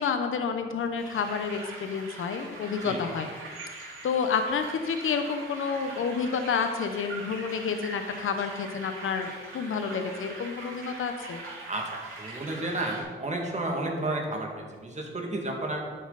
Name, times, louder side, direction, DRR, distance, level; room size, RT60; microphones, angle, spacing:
voice 1, 0.0-3.3 4.0-11.4, left 6 dB, 75° left, 7 dB, 0.9 m, -29 dB
sound 1, 1.0-13.0, right 2 dB, 80° right, 3.3 m, -42 dB
voice 2, 12.2-15.8, right 2 dB, 35° right, 0 dB, 2.1 m, -31 dB
11.0 x 8.7 x 4.1 m, 1.5 s
cardioid pair, 100°, 21 cm